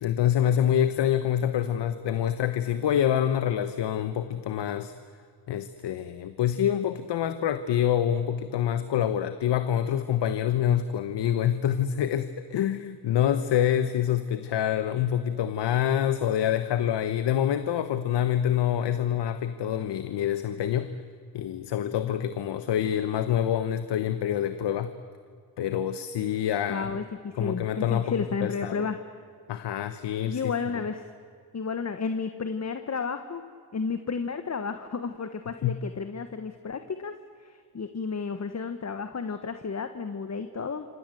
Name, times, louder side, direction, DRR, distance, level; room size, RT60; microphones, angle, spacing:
voice 1, 0.0-4.9 5.5-21.0 21.3-24.9 25.6-26.9 27.4-28.1 28.4-28.9 29.5-30.5 35.6-35.8, left 10 dB, 90° left, 11 dB, 1.2 m, -26 dB
voice 2, 26.7-29.0 30.3-31.0 31.5-33.4 33.7-37.1 37.4-40.9, left 5 dB, 40° left, 9 dB, 1.5 m, -32 dB
27.5 x 26.0 x 8.0 m, 2.2 s
cardioid pair, 95°, 41 cm